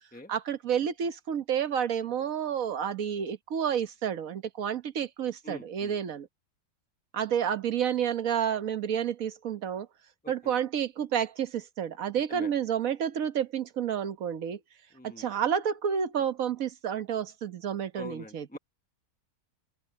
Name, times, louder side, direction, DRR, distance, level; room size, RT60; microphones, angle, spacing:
voice 1, 0.3-6.3 7.1-9.9 10.3-14.6 15.0-18.5, right 8 dB, 60° right, 1.5 m, -30 dB
voice 2, 5.4-5.9 10.4-10.5 12.3-12.5 14.9-15.3 17.9-18.6, left 1 dB, 10° left, 0.6 m, -44 dB
open air
omnidirectional pair, 1.7 m